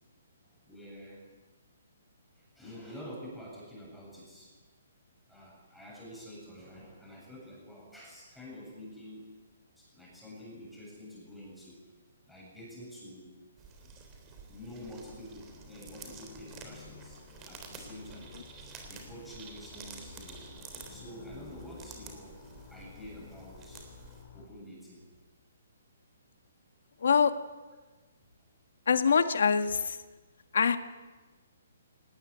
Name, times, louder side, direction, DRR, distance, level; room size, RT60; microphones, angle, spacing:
voice 1, 0.7-1.2 2.4-4.5 5.3-9.3 9.8-11.8 12.3-13.3 14.5-18.3 18.8-20.5 20.9-22.4 22.7-23.9 24.3-25.0, equal, ahead, -4 dB, 7.8 m, -48 dB
sound 1, 13.6-24.2, right 5 dB, 20° right, 3.5 m, -50 dB
sound 2, 14.8-24.5, left 6 dB, 35° left, 3.6 m, -53 dB
voice 2, 27.0-27.3 28.9-30.0 30.5-30.8, left 6 dB, 70° left, 10 dB, 1.7 m, -24 dB
18.5 x 18.5 x 10.0 m, 1.3 s
hypercardioid pair, 160°, 0 cm